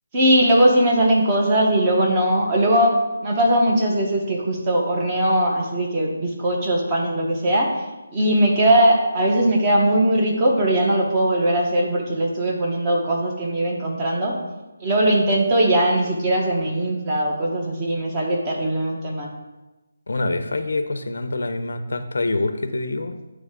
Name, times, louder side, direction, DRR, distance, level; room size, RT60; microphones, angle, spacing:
voice 1, 0.1-3.0 3.2-7.7 8.1-14.4 14.8-19.3, right 1 dB, 20° right, -1 dB, 0.9 m, -20 dB
voice 2, 20.1-23.1, left 2 dB, 75° left, 8 dB, 0.6 m, -25 dB
9.2 x 3.2 x 3.6 m, 1.1 s
hypercardioid pair, 170°, 0 cm